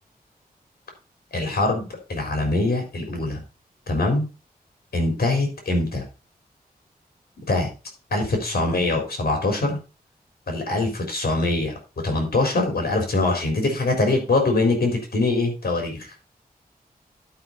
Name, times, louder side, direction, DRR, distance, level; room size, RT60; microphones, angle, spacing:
voice 1, 1.3-3.4 3.9-4.2 4.9-6.0 7.5-7.7 8.1-9.8 10.5-11.7 12.0-16.1, left 2 dB, 75° left, 2 dB, 4.0 m, -23 dB
11.5 x 5.5 x 4.0 m, 0.32 s
wide cardioid pair, 120°, 16 cm